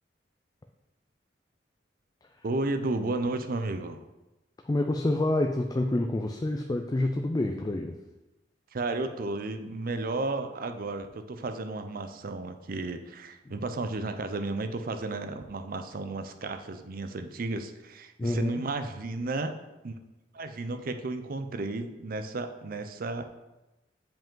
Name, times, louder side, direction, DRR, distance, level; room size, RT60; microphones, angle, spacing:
voice 1, 2.4-4.0 8.7-19.5 19.8-19.9 20.3-23.3, right 2 dB, 55° right, 9 dB, 0.5 m, -33 dB
voice 2, 4.7-8.0 18.2-18.6, left 1 dB, 20° left, 5 dB, 0.4 m, -28 dB
7.3 x 5.1 x 3.8 m, 1.0 s
head